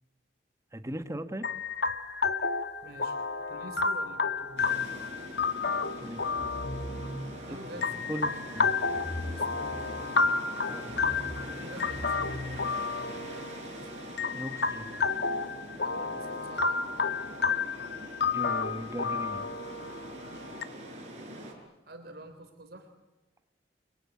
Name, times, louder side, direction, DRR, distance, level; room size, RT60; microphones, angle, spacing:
voice 1, 0.7-1.5 6.0-6.3 7.5-8.8 10.7-10.9 14.3-14.9 18.3-19.5, right 1 dB, 15° right, 9 dB, 1.3 m, -38 dB
sound 1, 1.4-20.6, left 4 dB, 70° left, 1.4 m, -31 dB
voice 2, 2.8-4.9 7.5-8.1 9.2-10.0 11.5-12.7 13.1-13.9 15.8-17.2 20.1-20.5 21.9-22.9, right 1 dB, 60° right, 5 dB, 3.6 m, -48 dB
sound 2, 4.6-21.5, right 1 dB, 40° right, 6.6 m, -43 dB
sound 3, 6.2-7.5 8.9-10.3 10.8-13.3, left 1 dB, 20° left, 7.5 m, -41 dB
29.5 x 23.0 x 8.4 m, 1.1 s
head